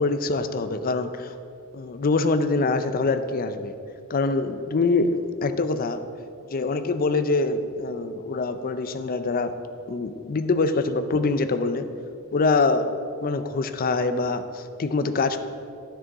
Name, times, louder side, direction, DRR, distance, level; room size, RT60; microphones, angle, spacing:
voice 1, 0.0-1.4 1.7-3.7 4.1-6.0 6.5-9.5 9.9-11.9 12.3-12.9 13.2-15.4, left 3 dB, 40° left, 10 dB, 0.5 m, -24 dB
10.5 x 6.3 x 4.0 m, 2.5 s
head